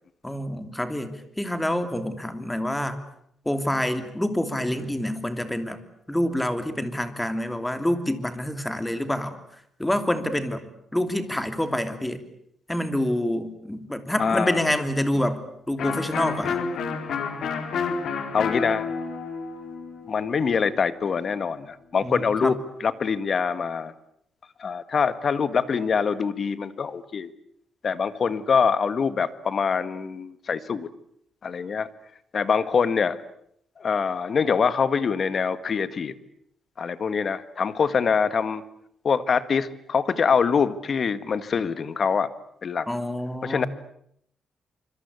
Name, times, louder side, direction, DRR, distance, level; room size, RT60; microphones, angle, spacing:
voice 1, 0.2-3.0 3.4-5.8 6.1-9.4 9.8-10.6 10.9-12.2 12.7-16.6 22.0-22.5 42.9-43.7, left 1 dB, 5° left, 9 dB, 3.2 m, -27 dB
voice 2, 14.2-14.6 18.3-18.9 20.1-23.9 24.6-27.3 27.8-30.9 31.4-31.9 32.3-33.2 33.8-36.1 36.8-38.6 39.0-42.3 42.6-42.9 43.4-43.7, left 6 dB, 45° left, 14 dB, 1.7 m, -24 dB
Electric guitar, 15.8-21.4, left 5 dB, 70° left, 4.3 m, -30 dB
26.0 x 25.5 x 8.4 m, 0.71 s
cardioid pair, 110°, 0 cm